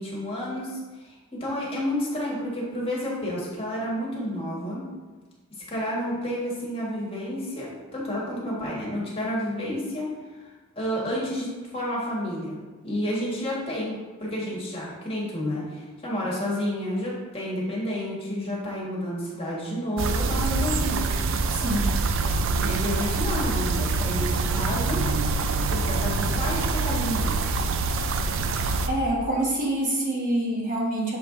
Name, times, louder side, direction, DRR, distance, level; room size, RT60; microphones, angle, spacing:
voice 1, 0.0-4.8 5.7-21.1 22.5-25.0 25.7-27.4, equal, 25° left, -5 dB, 1.7 m, -30 dB
sound 1, 20.0-28.9, right 3 dB, 60° right, 0.5 m, -25 dB
voice 2, 21.5-21.9 28.9-31.2, right 1 dB, 35° right, -5 dB, 1.3 m, -26 dB
6.8 x 4.7 x 3.8 m, 1.3 s
head